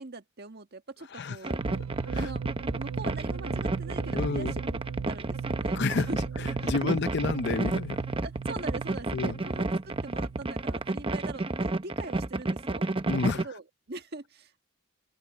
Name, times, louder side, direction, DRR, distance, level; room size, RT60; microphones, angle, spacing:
voice 1, 0.0-1.6 2.2-2.4 2.7-4.6 5.0-5.8 6.1-6.2 6.6-7.0 8.2-12.8 13.3-14.6, right 2 dB, 50° right, 1.7 m, -42 dB
sound 1, 1.4-13.4, right 2 dB, 25° right, 0.7 m, -31 dB
sound 2, 1.6-11.2, right 6 dB, 90° right, 0.5 m, -38 dB
voice 2, 4.1-4.5 5.7-6.1 6.4-8.0 9.1-9.4 13.1-13.5, left 4 dB, 55° left, 0.6 m, -30 dB
head